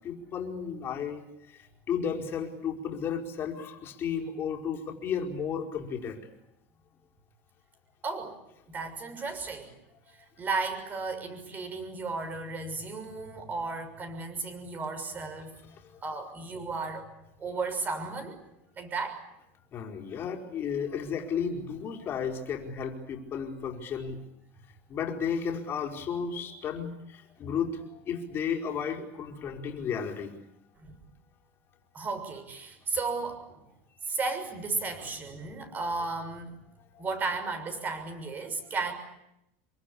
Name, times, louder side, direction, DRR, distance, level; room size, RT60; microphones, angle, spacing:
voice 1, 0.0-6.2 15.7-15.9 19.7-24.2 24.9-30.3 35.5-35.7 36.9-37.0, left 7 dB, 30° left, 2 dB, 4.9 m, -33 dB
voice 2, 8.0-8.3 8.7-9.7 10.4-15.5 16.0-17.0 17.4-18.4 18.8-19.2 30.8-30.9 31.9-33.5 34.0-36.5 37.0-38.9, right 4 dB, 25° right, 9 dB, 6.5 m, -34 dB
27.0 x 23.5 x 8.6 m, 0.85 s
supercardioid pair, 140°, 7 cm